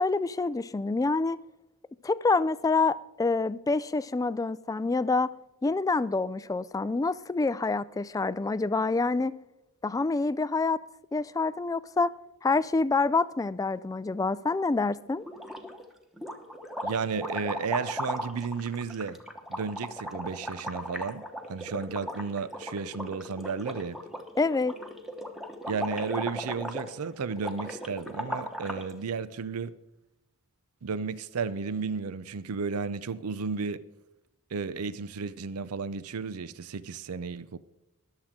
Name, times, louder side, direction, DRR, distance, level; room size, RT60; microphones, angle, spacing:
voice 1, 0.0-1.4 2.0-5.3 5.6-9.4 9.8-10.8 11.1-12.1 12.4-15.2 24.4-24.7, left 3 dB, 15° left, 0.3 m, -27 dB
sound 1, 15.2-15.9 16.2-28.9, equal, ahead, 1.1 m, -37 dB
voice 2, 16.8-19.2 19.5-24.0 25.7-29.8 30.8-33.8 34.5-37.6, right 5 dB, 90° right, 0.6 m, -33 dB
22.0 x 7.4 x 3.7 m
head